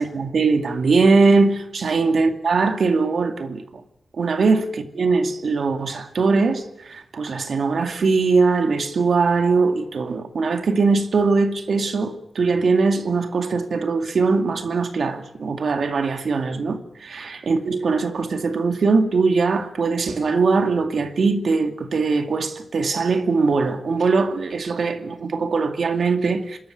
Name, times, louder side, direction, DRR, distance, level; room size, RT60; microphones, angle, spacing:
voice 1, 0.0-3.8 4.1-26.6, right 4 dB, 70° right, 2.3 m, -21 dB
27.5 x 13.0 x 9.7 m
wide cardioid pair, 125°, 0 cm